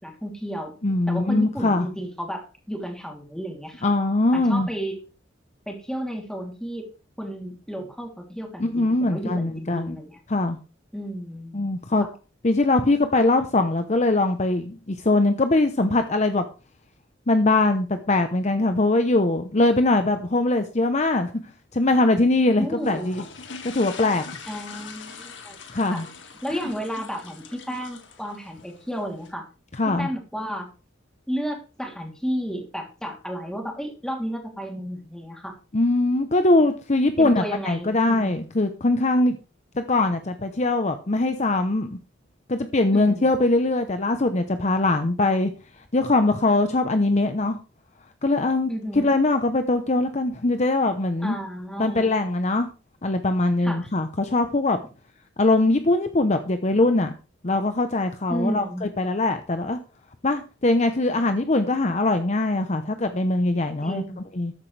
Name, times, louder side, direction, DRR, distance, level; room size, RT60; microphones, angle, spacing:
voice 1, 0.0-0.7 1.1-3.9 4.3-5.0 5.7-6.9 7.2-10.2 10.9-11.6 12.0-12.1 22.6-23.1 24.5-25.6 25.9-26.0 26.4-29.5 29.9-30.7 31.3-35.5 37.2-38.5 42.9-43.3 48.7-49.1 51.2-52.1 53.6-53.9 58.3-58.9 63.8-64.2, equal, 5° left, 1 dB, 3.0 m, -32 dB
voice 2, 0.8-1.9 3.8-4.7 8.6-10.0 10.3-10.6 11.5-12.1 12.4-16.4 17.3-21.3 21.7-23.2 23.7-24.2 25.7-26.1 29.8-30.1 35.7-39.4 39.7-42.0 42.5-45.5 45.9-47.6 48.2-48.7 49.0-51.3 51.8-52.7 53.0-54.8 55.4-57.1 57.4-59.8 60.2-64.0 64.4-64.5, left 2 dB, 35° left, 8 dB, 0.8 m, -22 dB
sound 1, 22.7-29.3, left 5 dB, 75° left, 1.9 m, -42 dB
13.5 x 10.5 x 3.3 m, 0.33 s
head